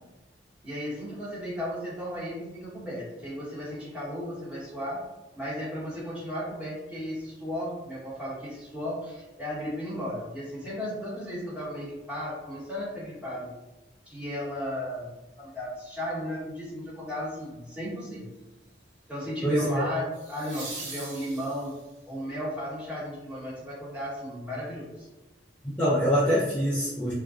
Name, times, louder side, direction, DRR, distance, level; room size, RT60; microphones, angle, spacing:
voice 1, 0.6-5.0 5.4-13.5 14.1-15.1 15.4-18.3 19.1-21.7 22.1-25.1, equal, 5° right, -9 dB, 0.9 m, -35 dB
sound 1, 17.1-17.4 20.1-22.0 24.9-25.0, right 2 dB, 85° right, 0.8 m, -41 dB
voice 2, 19.4-19.9 25.6-27.1, equal, 10° left, -10 dB, 0.4 m, -24 dB
2.4 x 2.1 x 2.4 m, 1.0 s
head